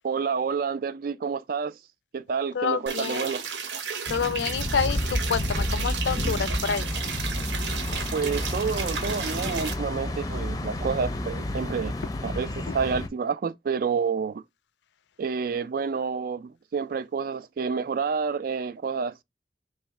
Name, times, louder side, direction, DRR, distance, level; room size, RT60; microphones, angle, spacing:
voice 1, 0.0-1.8 2.1-3.4 8.1-11.9 12.2-14.4 15.2-19.2, right 5 dB, 55° right, 0.3 m, -29 dB
voice 2, 2.5-3.4 4.1-6.9 12.7-12.8, left 6 dB, 80° left, 0.4 m, -28 dB
sound 1, 2.9-9.7, right 6 dB, 80° right, 0.8 m, -34 dB
sound 2, 4.1-13.1, left 1 dB, 20° left, 0.5 m, -30 dB
3.2 x 3.1 x 4.7 m
head